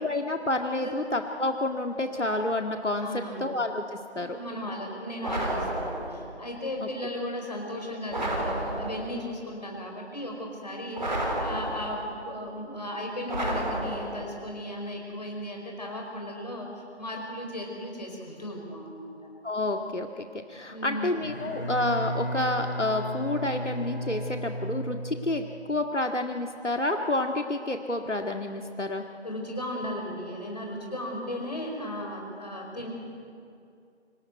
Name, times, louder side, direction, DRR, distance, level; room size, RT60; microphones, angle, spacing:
voice 1, 0.0-4.4 6.8-6.9 19.4-29.0, left 2 dB, 85° left, 4 dB, 2.0 m, -29 dB
voice 2, 3.0-3.5 4.1-19.3 20.7-21.1 29.2-32.9, left 1 dB, 35° left, 1 dB, 5.1 m, -36 dB
sound 1, 5.2-6.3 8.1-9.2 11.0-12.1 13.3-14.4, right 1 dB, 40° right, 3.9 m, -31 dB
Bowed string instrument, 21.1-25.5, equal, 55° left, 6.2 m, -34 dB
26.0 x 18.0 x 9.4 m, 2.4 s
figure-of-eight pair, 170°, 35 cm